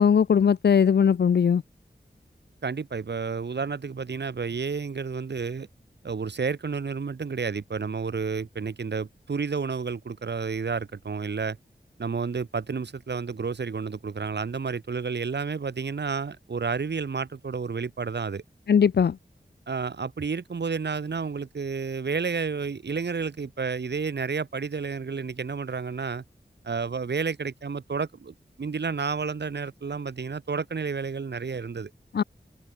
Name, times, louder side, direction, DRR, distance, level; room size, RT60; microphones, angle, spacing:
voice 1, 0.0-1.6 18.7-19.2 32.1-32.2, left 7 dB, 75° left, 0.5 m, -19 dB
voice 2, 2.6-5.7 6.0-11.6 12.0-18.4 19.7-26.2 26.6-31.9, right 5 dB, 90° right, 2.0 m, -31 dB
wide cardioid pair, 80°, 17 cm